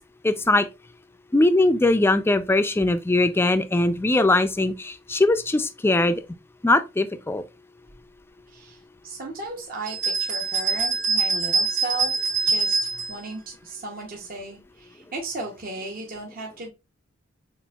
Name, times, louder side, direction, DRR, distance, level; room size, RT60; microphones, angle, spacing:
voice 1, 0.2-0.7 1.3-6.2 6.6-7.4, left 2 dB, 10° left, 0.3 m, -21 dB
voice 2, 8.5-16.7, right 3 dB, 45° right, 0.8 m, -36 dB
sound 1, 9.9-13.2, right 4 dB, 65° right, 2.4 m, -24 dB
6.8 x 2.5 x 2.3 m
head